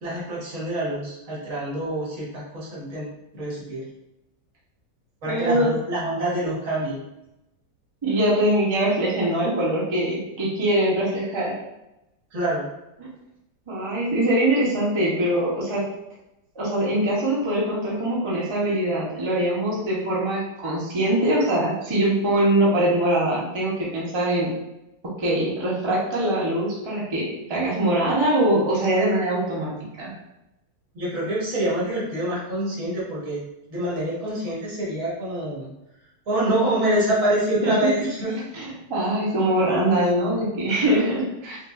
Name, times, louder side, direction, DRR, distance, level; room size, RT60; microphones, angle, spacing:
voice 1, 0.0-3.1 3.3-3.9 5.2-7.0 12.3-12.7 30.9-33.4 33.7-35.7 36.3-38.4, right 1 dB, 60° right, -6 dB, 1.5 m, -26 dB
voice 2, 5.2-5.7 8.0-11.6 13.0-13.1 13.7-15.9 16.5-24.5 25.0-30.1 37.6-37.9 38.5-41.6, right 1 dB, 30° right, -5 dB, 0.5 m, -23 dB
4.7 x 2.4 x 2.4 m, 0.91 s
omnidirectional pair, 1.7 m